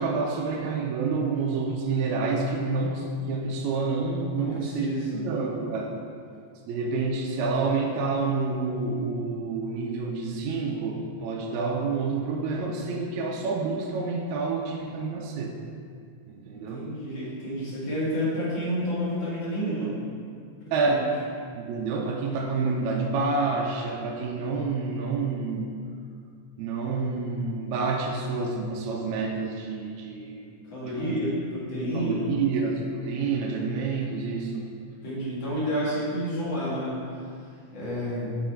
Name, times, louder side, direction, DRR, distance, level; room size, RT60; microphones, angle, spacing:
voice 1, 0.0-6.0 6.7-15.6 16.3-16.9 20.7-21.1 21.5-25.7 26.6-30.6 30.8-31.2 31.9-34.7, right 4 dB, 75° right, -1 dB, 1.9 m, -28 dB
voice 2, 4.4-5.2 16.5-19.9 20.8-21.1 30.7-32.3 35.0-37.0 37.7-38.4, equal, 40° left, -8 dB, 2.4 m, -30 dB
7.3 x 5.6 x 4.5 m, 2.3 s
omnidirectional pair, 3.5 m